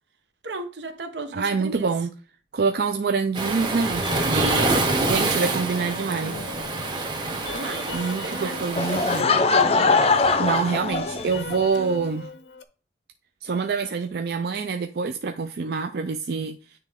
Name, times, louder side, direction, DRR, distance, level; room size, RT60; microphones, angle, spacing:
voice 1, 0.4-1.9 4.3-5.6 7.4-8.7, right 3 dB, 80° right, 1.0 m, -34 dB
voice 2, 1.3-2.1 2.5-4.1 5.0-6.4 7.9-9.3 10.4-12.3 13.4-16.6, right 5 dB, 60° right, 0.4 m, -26 dB
Waves surf, 3.3-9.2, right 2 dB, 25° right, 1.0 m, -26 dB
sound 1, 4.0-12.6, left 4 dB, 90° left, 0.6 m, -40 dB
Laughter / Crowd, 8.8-11.6, left 4 dB, 35° left, 0.5 m, -21 dB
9.4 x 3.3 x 3.5 m
head